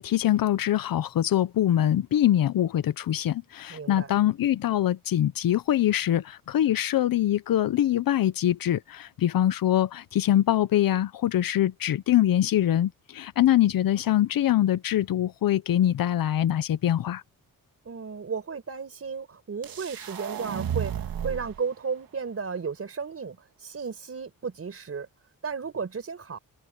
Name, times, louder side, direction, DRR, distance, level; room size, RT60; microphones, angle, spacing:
voice 1, 0.0-17.2, left 12 dB, 80° left, 0.7 m, -24 dB
voice 2, 3.7-4.1 17.8-25.1 25.4-26.4, right 5 dB, 45° right, 4.7 m, -34 dB
sound 1, 19.6-21.6, right 9 dB, 85° right, 2.0 m, -32 dB
wide cardioid pair, 120°, 34 cm